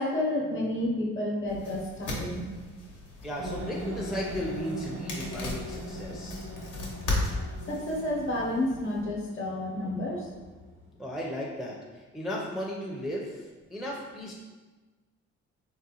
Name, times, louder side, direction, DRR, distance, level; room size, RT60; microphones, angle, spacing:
voice 1, 0.0-2.5 7.4-10.3, left 1 dB, 45° left, -2 dB, 0.8 m, -30 dB
sound 1, 1.5-9.0, left 2 dB, 80° left, 0.9 m, -37 dB
voice 2, 3.2-6.5 11.0-14.3, equal, ahead, -3 dB, 0.4 m, -35 dB
sound 2, 3.4-10.7, equal, 85° right, 0.6 m, -40 dB
3.6 x 2.2 x 2.8 m, 1.3 s
cardioid pair, 90°, 30 cm